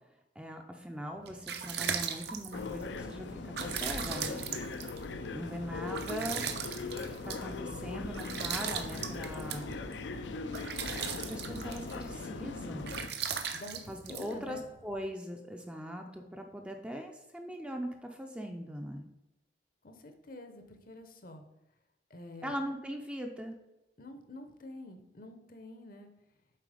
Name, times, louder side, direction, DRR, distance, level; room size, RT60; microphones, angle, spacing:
voice 1, 0.4-4.5 5.3-6.5 6.9-9.8 10.5-10.6 10.9-12.9 13.9-19.1 22.4-23.5, equal, 5° right, 3 dB, 0.5 m, -41 dB
sound 1, 1.0-15.0, right 7 dB, 65° right, 0.6 m, -39 dB
sound 2, 2.5-13.1, left 3 dB, 80° left, 0.5 m, -40 dB
sound 3, 7.6-14.7, right 1 dB, 40° right, 0.9 m, -60 dB
voice 2, 14.1-14.7 19.8-21.4 22.1-22.5 24.0-26.1, left 1 dB, 50° left, 6 dB, 0.8 m, -48 dB
7.7 x 4.2 x 4.9 m, 0.95 s
head